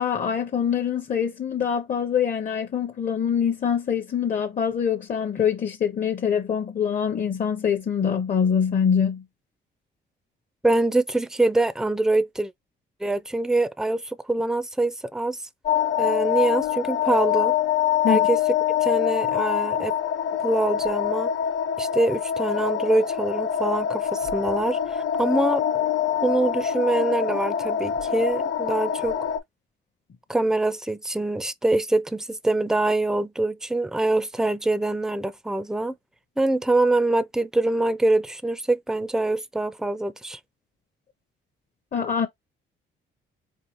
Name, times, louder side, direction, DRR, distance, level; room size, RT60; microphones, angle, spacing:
voice 1, 0.0-9.2 18.0-18.2 41.9-42.3, left 7 dB, 40° left, 0.6 m, -24 dB
voice 2, 10.6-12.5 13.0-15.4 16.0-17.6 18.1-18.4 18.8-19.9 20.4-21.3 21.8-25.6 26.2-29.2 30.3-36.0 36.4-40.4, right 2 dB, 5° right, 0.3 m, -24 dB
sound 1, 15.7-29.4, left 9 dB, 65° left, 0.9 m, -25 dB
4.5 x 2.4 x 2.9 m
cardioid pair, 90°, 20 cm